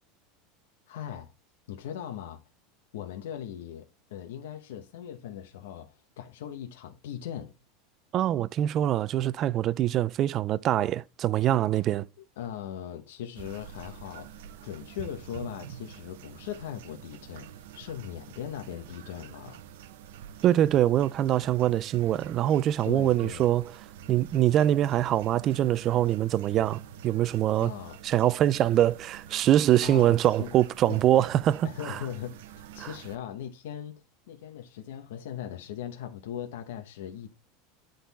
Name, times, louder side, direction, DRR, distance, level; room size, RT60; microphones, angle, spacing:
voice 1, 0.9-1.3 1.7-2.4 2.9-7.5 12.4-19.6 22.8-23.6 27.6-28.0 29.8-30.5 30.9-31.0 31.6-34.0 34.3-37.3, left 10 dB, 85° left, 1.0 m, -39 dB
voice 2, 8.1-12.1 20.4-23.7 24.1-27.7 28.0-32.0 32.8-32.9, right 12 dB, 30° right, 0.3 m, -24 dB
sound 1, 13.3-33.2, right 9 dB, 75° right, 0.7 m, -47 dB
10.0 x 4.0 x 4.1 m
supercardioid pair, 165°, 0 cm